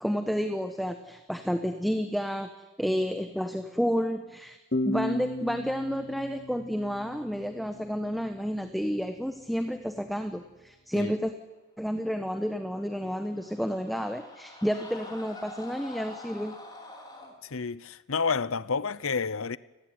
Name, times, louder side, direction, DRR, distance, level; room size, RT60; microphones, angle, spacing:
voice 1, 0.0-2.5 2.8-4.6 4.8-11.3 11.8-16.6, equal, ahead, 1.2 m, -30 dB
sound 1, 4.7-8.1, left 1 dB, 45° left, 1.0 m, -34 dB
sound 2, 12.9-17.3, left 2 dB, 20° left, 4.4 m, -45 dB
voice 2, 17.4-19.6, left 5 dB, 70° left, 0.8 m, -30 dB
29.5 x 20.5 x 9.7 m
head